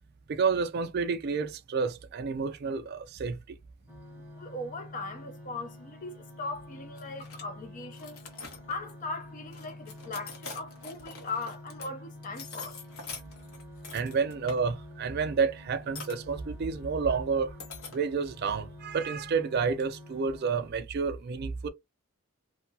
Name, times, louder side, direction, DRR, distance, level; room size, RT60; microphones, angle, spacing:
voice 1, 0.3-3.6 13.9-17.5 17.9-21.7, right 5 dB, 45° right, 0.3 m, -30 dB
sound 1, 3.9-20.7, left 1 dB, 10° right, 0.7 m, -48 dB
voice 2, 4.4-8.2 8.7-12.8, left 3 dB, 35° left, 0.4 m, -39 dB
sound 2, 6.9-7.4 7.9-8.9 9.5-11.9 12.2-14.6 16.0-16.1 17.6-18.0, left 4 dB, 70° left, 0.9 m, -44 dB
2.7 x 2.2 x 2.7 m
head